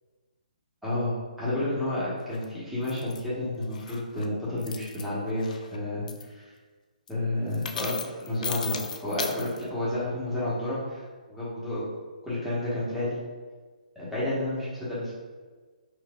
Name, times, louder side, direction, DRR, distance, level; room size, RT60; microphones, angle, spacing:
voice 1, 0.8-6.5 7.1-8.0 8.3-11.0 11.3-11.8 12.2-13.2 13.9-15.1, left 1 dB, ahead, -12 dB, 1.3 m, -30 dB
sound 1, 2.3-2.4 2.9-3.2 3.6-4.2 4.6-5.0 5.4-5.8 6.1-6.2 7.1-7.2 7.5-9.6, left 6 dB, 60° left, 0.4 m, -36 dB
4.7 x 2.5 x 2.4 m, 1.4 s
hypercardioid pair, 140°, 5 cm